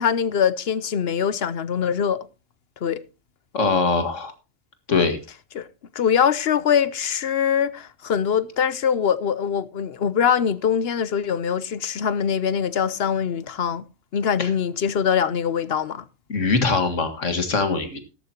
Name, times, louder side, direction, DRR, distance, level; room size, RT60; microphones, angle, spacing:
voice 1, 0.0-2.3 2.8-3.0 5.5-5.7 5.9-13.8 14.1-16.0, left 7 dB, 60° left, 0.9 m, -23 dB
voice 2, 3.5-4.3 4.9-5.2 14.4-14.5 16.3-18.0, left 4 dB, 75° left, 2.2 m, -22 dB
13.5 x 12.5 x 2.9 m
omnidirectional pair, 1.3 m